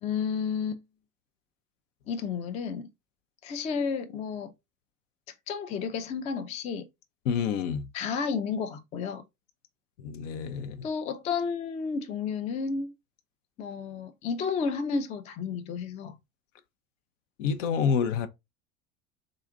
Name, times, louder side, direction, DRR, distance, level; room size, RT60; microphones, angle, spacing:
voice 1, 0.0-0.8 2.1-2.9 3.4-4.5 5.5-6.9 7.9-9.2 10.8-12.9 13.6-16.2, left 5 dB, 20° left, 0.3 m, -31 dB
voice 2, 7.3-7.9 10.0-10.8 17.4-18.3, left 6 dB, 65° left, 0.6 m, -28 dB
3.8 x 2.4 x 3.6 m
figure-of-eight pair, 75°, 40 cm